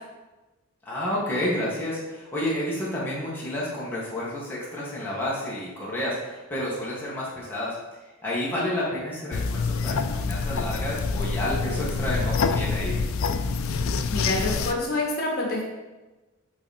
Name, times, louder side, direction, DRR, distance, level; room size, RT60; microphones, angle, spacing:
voice 1, 0.8-13.0, left 1 dB, 10° left, -7 dB, 1.6 m, -30 dB
sound 1, 9.3-14.7, left 4 dB, 75° left, 0.4 m, -26 dB
voice 2, 14.1-15.6, left 2 dB, 50° left, -2 dB, 1.8 m, -27 dB
8.1 x 4.0 x 4.2 m, 1.1 s
head